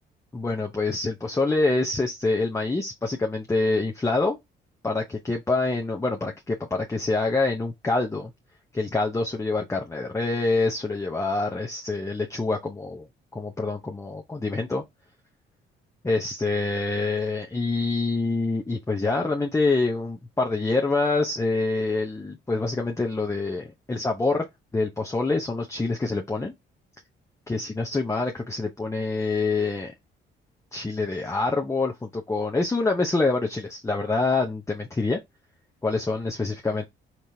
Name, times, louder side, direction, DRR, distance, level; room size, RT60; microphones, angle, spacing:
voice 1, 0.3-4.4 4.8-8.3 8.7-13.1 13.3-14.8 16.0-24.5 24.7-26.5 27.5-29.9 30.7-35.2 35.8-36.8, left 3 dB, 15° left, 0.7 m, -26 dB
3.5 x 2.9 x 2.7 m
cardioid pair, 90°, 20 cm